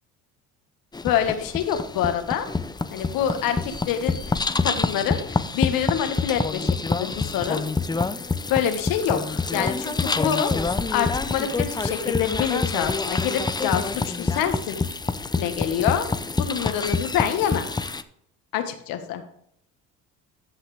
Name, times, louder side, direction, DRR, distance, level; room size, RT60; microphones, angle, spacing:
sound 1, 0.9-18.0, left 4 dB, 10° left, 0.6 m, -27 dB
voice 1, 1.0-2.5 2.9-4.2 4.6-7.6 8.5-14.8 15.4-16.1 16.4-17.7 18.5-19.2, left 9 dB, 80° left, 7 dB, 1.7 m, -26 dB
14.0 x 5.7 x 3.4 m, 0.71 s
supercardioid pair, 95°, 34 cm